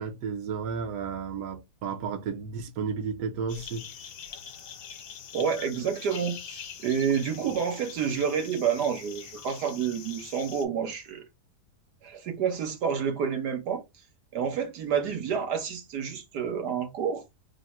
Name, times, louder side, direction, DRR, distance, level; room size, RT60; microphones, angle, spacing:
voice 1, 0.0-3.9, right 6 dB, 70° right, 1.2 m, -33 dB
sound 1, 3.5-10.7, left 7 dB, 65° left, 1.2 m, -44 dB
voice 2, 5.3-11.2 12.0-13.8 14.3-17.2, right 7 dB, 90° right, 1.5 m, -29 dB
3.7 x 2.1 x 4.2 m
omnidirectional pair, 1.7 m